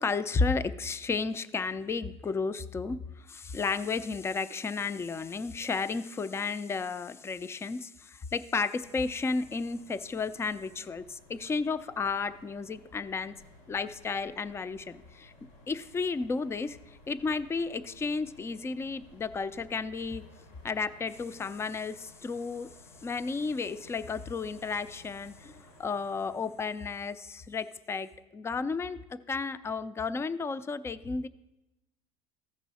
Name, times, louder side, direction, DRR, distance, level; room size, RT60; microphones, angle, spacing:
voice 1, 0.0-13.4 13.7-15.3 15.7-16.8 17.1-20.2 20.6-22.7 23.0-31.3, left 4 dB, 15° left, 15 dB, 0.4 m, -33 dB
sound 1, 8.8-27.2, left 2 dB, 85° left, 2.2 m, -57 dB
14.5 x 5.4 x 4.1 m, 0.97 s
supercardioid pair, 115°, 18 cm